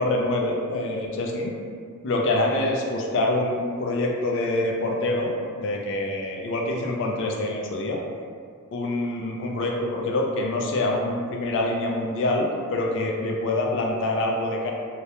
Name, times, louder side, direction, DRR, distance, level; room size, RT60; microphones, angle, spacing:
voice 1, 0.0-1.5 2.0-8.0 8.7-14.7, left 2 dB, 55° left, 0 dB, 0.3 m, -25 dB
2.3 x 2.1 x 2.8 m, 2.1 s
head